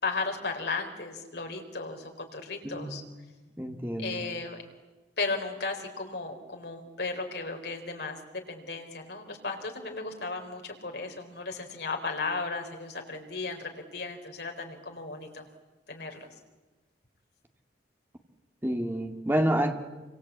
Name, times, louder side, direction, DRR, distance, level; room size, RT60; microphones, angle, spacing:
voice 1, 0.0-3.0 4.0-4.6 5.2-15.5 15.9-16.3, left 3 dB, 65° left, 3 dB, 4.4 m, -35 dB
voice 2, 2.6-3.1 3.6-4.2 18.6-19.7, right 1 dB, 10° right, 5 dB, 2.1 m, -28 dB
26.5 x 25.5 x 8.5 m, 1.2 s
head